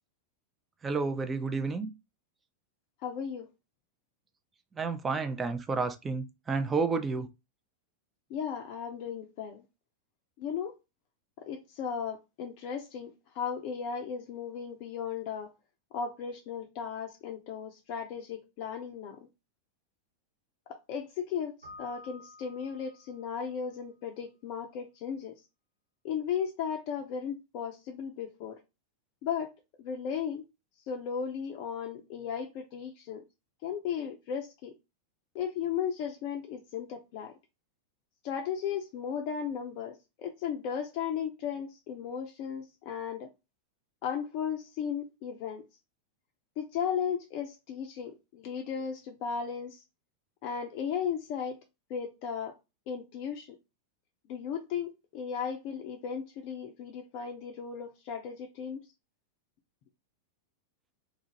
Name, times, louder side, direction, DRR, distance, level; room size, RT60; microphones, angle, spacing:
voice 1, 0.8-1.9 4.8-7.3, right 4 dB, 15° right, 0.5 m, -30 dB
voice 2, 3.0-3.5 8.3-9.6 10.4-10.7 11.4-15.5 15.9-19.2 20.7-25.4 26.0-28.6 29.2-29.5 29.8-30.4 30.9-33.2 33.6-34.7 35.3-37.3 38.2-43.3 44.0-45.7 46.6-49.8 50.4-51.6 51.9-52.5 52.9-53.5 54.3-58.8, left 7 dB, 45° left, 0.4 m, -35 dB
Keyboard (musical), 21.6-23.4, left 3 dB, 80° right, 1.3 m, -51 dB
2.6 x 2.4 x 2.9 m
figure-of-eight pair, 90°, 0 cm